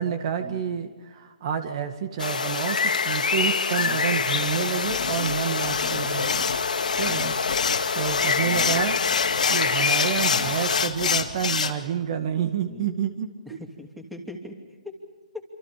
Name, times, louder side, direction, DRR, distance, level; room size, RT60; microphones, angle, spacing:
voice 1, 0.0-2.8 3.0-6.4 7.0-13.3, right 8 dB, 40° right, 8 dB, 2.0 m, -29 dB
sound 1, 2.2-10.9, left 5 dB, 85° left, 2.3 m, -26 dB
sound 2, 4.1-11.7, left 6 dB, 70° left, 2.8 m, -28 dB
voice 2, 5.8-6.2 7.0-7.4 8.4-8.7 10.3-10.5 12.7-12.9 13.5-14.6 14.8-15.0 15.3-15.4, left 1 dB, ahead, 3 dB, 2.7 m, -41 dB
27.0 x 26.5 x 5.1 m, 1.3 s
hypercardioid pair, 155°, 4 cm